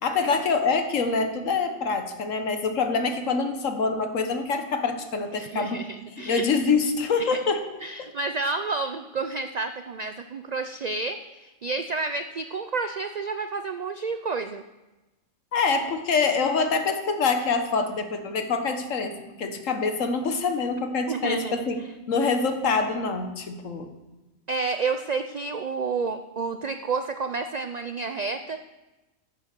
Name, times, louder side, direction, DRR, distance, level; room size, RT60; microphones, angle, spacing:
voice 1, 0.0-5.8 6.2-7.6 8.0-8.1 15.5-21.8 22.1-23.9, left 4 dB, 75° left, 7 dB, 1.5 m, -25 dB
voice 2, 5.3-6.4 7.2-7.4 7.8-14.6 21.1-21.7 24.5-28.6, right 4 dB, 80° right, 9 dB, 0.3 m, -30 dB
9.8 x 7.3 x 6.7 m, 1.1 s
omnidirectional pair, 1.4 m